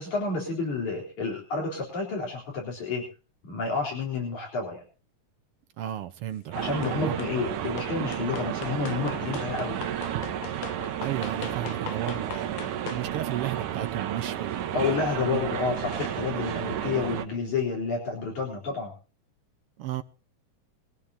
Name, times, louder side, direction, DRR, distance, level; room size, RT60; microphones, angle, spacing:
voice 1, 0.0-3.0 3.4-4.8 6.6-9.8 14.7-18.9, left 4 dB, 70° left, 5.4 m, -30 dB
voice 2, 5.8-7.1 11.0-14.9 19.8-20.0, right 11 dB, 70° right, 1.4 m, -34 dB
sound 1, 6.5-17.3, right 11 dB, 90° right, 2.7 m, -32 dB
sound 2, 6.8-7.4 7.8-13.1, left 10 dB, 85° left, 2.5 m, -41 dB
21.5 x 15.5 x 2.8 m
omnidirectional pair, 3.5 m